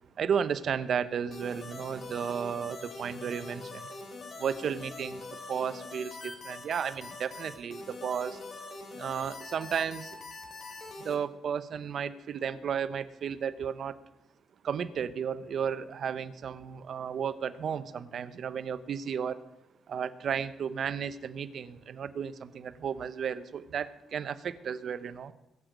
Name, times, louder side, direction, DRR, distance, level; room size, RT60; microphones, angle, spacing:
voice 1, 0.2-3.9 4.4-8.4 8.9-10.2 11.0-14.0 14.6-19.4 19.9-25.3, right 7 dB, 60° right, 13 dB, 0.9 m, -33 dB
sound 1, 1.3-11.2, left 3 dB, 50° left, 3.5 m, -43 dB
22.0 x 7.8 x 5.3 m, 0.93 s
cardioid pair, 90°, 0 cm